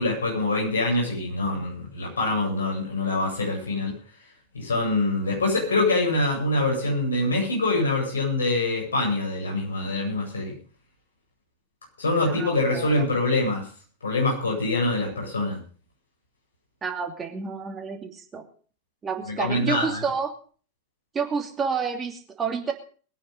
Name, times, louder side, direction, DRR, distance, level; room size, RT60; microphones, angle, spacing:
voice 1, 0.0-3.9 4.5-10.5 12.0-13.6 14.0-15.6 19.3-20.0, left 2 dB, 70° left, -1 dB, 7.9 m, -25 dB
voice 2, 12.3-12.8 16.8-18.4 19.0-20.3 21.1-22.7, right 5 dB, 20° right, 4 dB, 2.8 m, -29 dB
21.5 x 9.4 x 5.3 m, 0.42 s
figure-of-eight pair, 90°, 0 cm